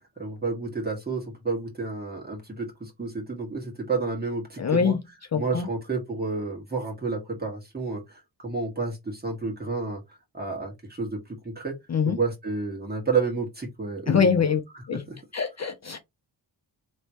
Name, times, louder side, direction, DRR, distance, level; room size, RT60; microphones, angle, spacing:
voice 1, 0.2-5.0 5.3-10.0 10.3-11.2 11.6-11.7 12.1-14.4 14.9-15.2, right 4 dB, 20° right, 1.9 m, -30 dB
voice 2, 4.6-5.0 5.3-5.7 11.9-12.2 14.1-14.6 14.9-15.0 15.3-16.0, left 6 dB, 40° left, 0.6 m, -23 dB
3.5 x 3.1 x 3.0 m
wide cardioid pair, 105°, 44 cm